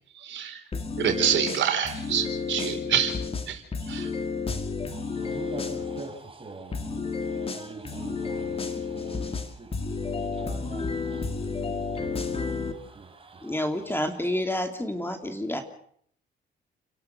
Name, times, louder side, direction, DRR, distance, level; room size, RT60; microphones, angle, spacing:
voice 1, 0.1-0.6 1.0-3.1 3.5-3.6 3.9-4.1, right 8 dB, 70° right, 4.1 m, -26 dB
sound 1, 0.7-6.1 6.7-12.7, left 4 dB, 30° left, 2.5 m, -31 dB
voice 2, 4.9-9.7 10.0-13.6, right 3 dB, 25° right, 5.7 m, -44 dB
voice 3, 13.4-15.6, left 1 dB, 10° left, 2.8 m, -29 dB
29.5 x 12.0 x 8.2 m
cardioid pair, 90°, 20 cm